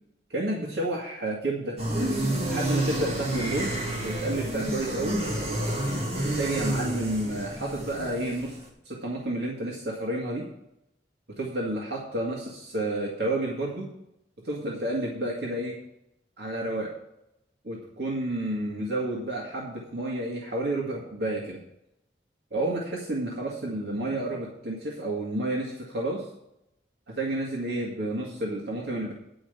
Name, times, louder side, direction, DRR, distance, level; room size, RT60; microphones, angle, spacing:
voice 1, 0.3-1.8 2.5-3.8 4.0-5.2 6.2-8.6 8.9-10.4 11.4-13.9 14.4-15.8 16.4-16.9 17.6-21.6 22.5-26.2 27.1-29.1, right 1 dB, 70° right, -3 dB, 2.1 m, -30 dB
sound 1, 1.8-8.6, right 1 dB, 35° right, 2.1 m, -29 dB
10.0 x 5.2 x 8.2 m, 0.82 s
head